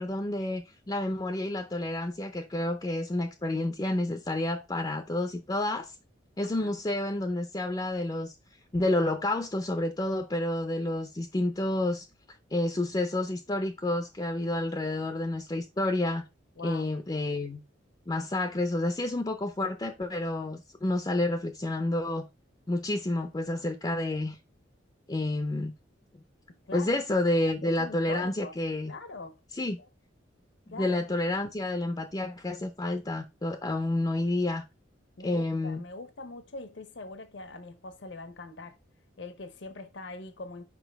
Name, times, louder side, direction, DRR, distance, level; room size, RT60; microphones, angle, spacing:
voice 1, 0.0-5.9 6.4-8.3 8.7-12.1 12.5-16.2 16.6-17.6 18.1-22.3 22.7-24.4 25.1-25.7 26.7-28.9 29.5-29.8 30.8-34.6 35.2-35.8, left 1 dB, 20° left, 0.5 m, -29 dB
voice 2, 6.4-6.7 16.6-16.9 26.7-27.0 27.6-28.5 28.9-29.4 29.8-29.9 30.7-31.0 35.2-38.8 39.2-40.6, left 3 dB, 65° left, 0.8 m, -42 dB
6.1 x 4.6 x 3.4 m
head